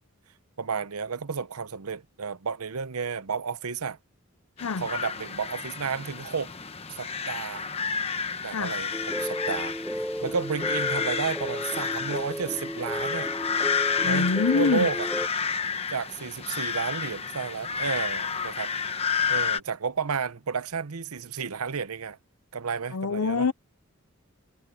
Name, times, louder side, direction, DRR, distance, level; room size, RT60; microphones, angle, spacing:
voice 1, 0.6-4.0 4.8-6.5 6.9-7.7 8.4-13.3 14.0-14.3 14.5-15.1 15.9-18.7 19.3-22.2 22.5-23.5, right 5 dB, 85° right, 0.8 m, -32 dB
sound 1, 4.6-19.6, left 6 dB, 25° left, 1.1 m, -30 dB
sound 2, 8.9-15.3, equal, ahead, 0.4 m, -34 dB
voice 2, 14.0-14.9 22.9-23.5, left 4 dB, 90° left, 0.7 m, -25 dB
head